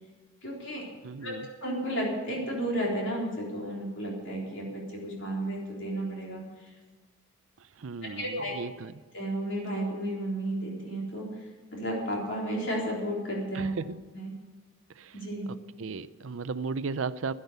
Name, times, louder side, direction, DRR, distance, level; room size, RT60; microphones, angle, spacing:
voice 1, 0.4-0.9 1.2-1.4 1.6-6.4 8.0-8.5 9.1-13.7 14.1-14.3 15.1-15.5, right 1 dB, 60° left, -2 dB, 3.9 m, -33 dB
voice 2, 1.0-1.5 7.8-8.9 13.5-14.0 15.0-15.1 15.8-17.3, right 4 dB, 70° right, 14 dB, 0.5 m, -35 dB
12.0 x 11.0 x 6.8 m, 1.3 s
head